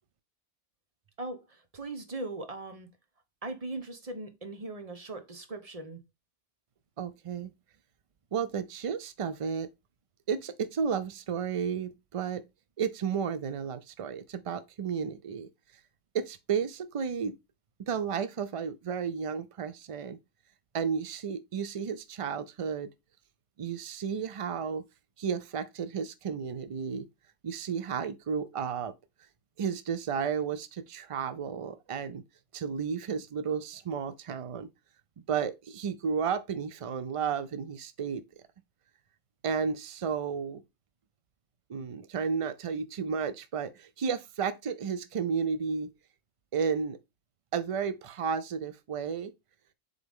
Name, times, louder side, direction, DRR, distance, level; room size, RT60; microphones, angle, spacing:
voice 1, 1.2-2.9 3.4-6.0, right 2 dB, 35° right, 1.1 m, -39 dB
voice 2, 7.0-7.5 8.3-9.7 10.3-12.4 12.8-15.5 16.1-17.4 17.8-20.2 20.7-22.9 23.6-24.9 25.2-27.1 27.4-28.9 29.6-32.2 32.5-34.7 35.3-38.2 39.4-40.6 41.7-45.9 46.5-47.0 47.5-49.3, right 6 dB, 60° right, 0.3 m, -32 dB
7.5 x 3.5 x 3.5 m
omnidirectional pair, 1.2 m